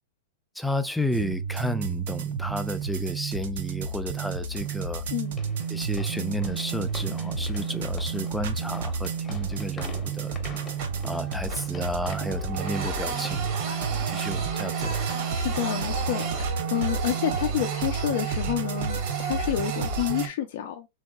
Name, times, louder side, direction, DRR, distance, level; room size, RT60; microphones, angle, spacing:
voice 1, 0.6-5.0 5.7-10.4 11.0-14.9, equal, ahead, 0.4 m, -32 dB
sound 1, 1.1-20.3, right 5 dB, 70° right, 0.5 m, -31 dB
sound 2, 4.5-18.4, left 3 dB, 20° left, 0.7 m, -46 dB
Printer, 8.7-9.3 9.6-9.8 10.2-11.8 12.1-20.3, right 6 dB, 55° right, 0.8 m, -35 dB
voice 2, 15.3-20.9, left 11 dB, 65° left, 0.4 m, -29 dB
2.9 x 2.6 x 2.2 m
hypercardioid pair, 110°, 0 cm